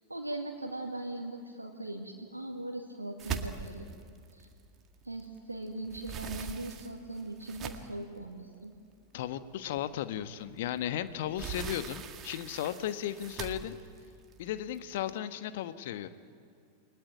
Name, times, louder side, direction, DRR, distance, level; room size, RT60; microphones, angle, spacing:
voice 1, 0.0-3.9 4.3-4.5 5.0-8.7, right 2 dB, 85° right, 1 dB, 2.2 m, -40 dB
sound 1, 3.2-5.4 5.7-8.1 8.7-8.8 9.3-9.4 10.8-15.1, right 7 dB, 30° right, 2.0 m, -42 dB
voice 2, 9.1-13.8 14.4-16.1, left 11 dB, 55° left, 12 dB, 1.3 m, -35 dB
29.5 x 21.5 x 9.3 m, 2.3 s
figure-of-eight pair, 90°, 0 cm